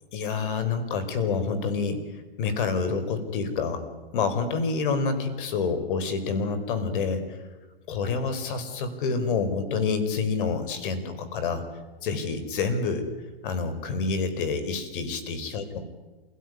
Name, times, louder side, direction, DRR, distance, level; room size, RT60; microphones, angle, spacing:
voice 1, 0.1-2.0 2.4-3.8 4.1-7.4 7.9-11.6 12.0-13.0 13.4-15.8, left 4 dB, 55° left, 10 dB, 4.8 m, -28 dB
27.5 x 17.0 x 9.6 m, 1.2 s
hypercardioid pair, 130°, 31 cm